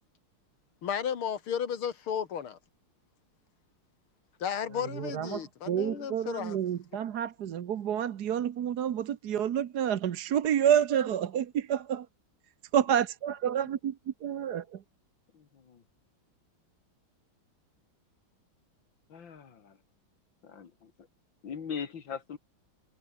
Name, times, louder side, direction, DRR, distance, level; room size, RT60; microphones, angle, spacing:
voice 1, 0.8-2.6 4.4-6.6, left 8 dB, 90° left, 2.7 m, -33 dB
voice 2, 4.9-12.1 12.7-14.8, right 9 dB, 55° right, 1.4 m, -29 dB
voice 3, 15.3-15.8 19.1-19.8 20.4-21.1 21.4-22.4, left 6 dB, 65° left, 2.7 m, -41 dB
omnidirectional pair, 2.3 m